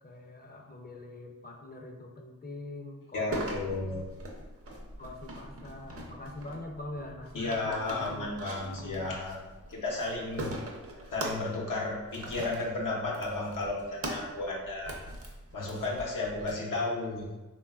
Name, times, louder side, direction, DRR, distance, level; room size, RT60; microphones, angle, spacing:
voice 1, 0.0-4.0 5.0-8.2 8.6-9.2, left 2 dB, 30° left, 2 dB, 0.4 m, -44 dB
voice 2, 3.1-4.0 7.3-9.4 9.7-10.5 11.1-14.9 15.5-17.3, left 2 dB, 85° left, -3 dB, 0.7 m, -33 dB
sound 1, 3.3-16.5, right 1 dB, 45° right, 0.5 m, -42 dB
3.1 x 2.2 x 2.3 m, 1.1 s
cardioid pair, 45°, 31 cm